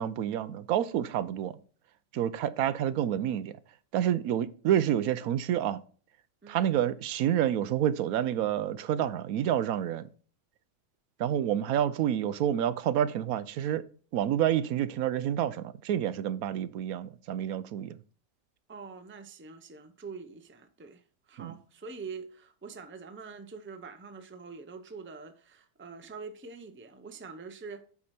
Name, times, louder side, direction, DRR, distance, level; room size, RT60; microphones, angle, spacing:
voice 1, 0.0-1.6 2.1-3.6 3.9-5.8 6.5-10.1 11.2-13.8 14.1-18.0 21.4-21.5, right 10 dB, 75° right, 1.0 m, -28 dB
voice 2, 6.4-6.8 18.7-27.8, right 5 dB, 15° right, 0.5 m, -45 dB
8.5 x 4.8 x 4.3 m
omnidirectional pair, 1.5 m